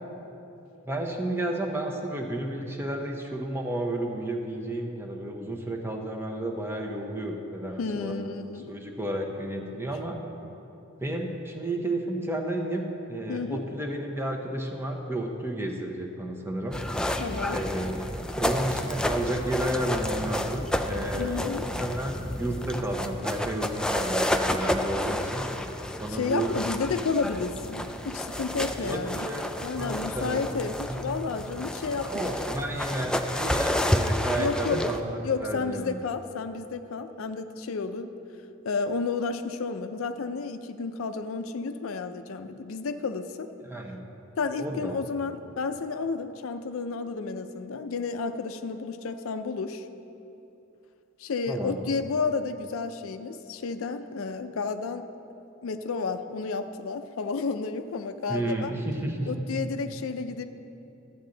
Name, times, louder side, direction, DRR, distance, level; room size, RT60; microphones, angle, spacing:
voice 1, 0.8-8.1 8.7-10.2 11.0-16.8 17.5-25.5 26.0-26.7 28.8-29.4 29.7-31.1 32.0-35.9 43.7-44.0 44.6-45.0 51.5-51.8 58.3-59.6, right 1 dB, 10° right, 1 dB, 0.8 m, -32 dB
voice 2, 7.8-8.7 13.3-13.6 17.2-17.6 21.1-21.7 26.1-29.2 29.6-32.3 34.4-34.8 35.2-38.2 38.6-43.5 44.4-49.9 51.2-55.1 55.6-58.7 59.2-60.4, left 4 dB, 85° left, 9 dB, 0.5 m, -31 dB
sound 1, 16.7-35.0, left 1 dB, 5° left, 0.3 m, -30 dB
12.5 x 8.4 x 3.9 m, 3.0 s
head